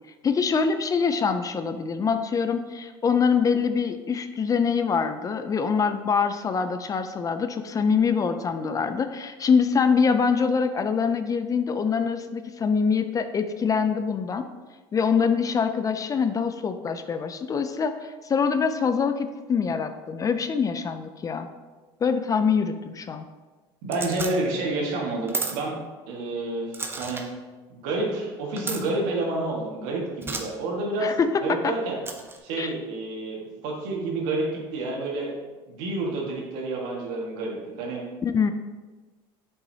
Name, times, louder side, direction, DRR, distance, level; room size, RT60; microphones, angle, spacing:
voice 1, 0.2-14.5 14.9-21.5 22.0-23.3 31.0-31.7 32.6-32.7 38.2-38.5, left 5 dB, 30° left, 9 dB, 0.4 m, -24 dB
voice 2, 23.8-25.8 26.1-27.3 27.7-32.0 32.4-35.3 35.7-38.0, right 2 dB, 75° right, -1 dB, 1.7 m, -29 dB
sound 1, 23.9-24.3 25.3-25.5 26.7-27.2 28.6-28.8 30.2-30.4 32.0-32.4, right 3 dB, 20° right, 0.8 m, -32 dB
7.1 x 5.5 x 2.8 m, 1.3 s
supercardioid pair, 105°, 13 cm